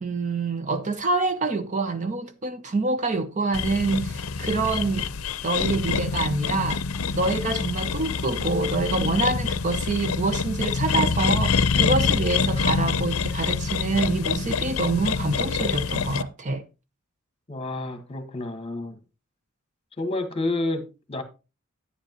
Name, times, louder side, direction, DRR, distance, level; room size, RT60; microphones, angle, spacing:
voice 1, 0.0-5.1 5.4-6.8 7.1-16.6, right 3 dB, 35° right, 0.6 m, -26 dB
sound 1, 3.5-16.2, left 5 dB, 70° left, 0.6 m, -26 dB
voice 2, 17.5-19.0 20.0-21.2, left 2 dB, 25° left, 1.4 m, -29 dB
10.0 x 10.0 x 2.9 m
head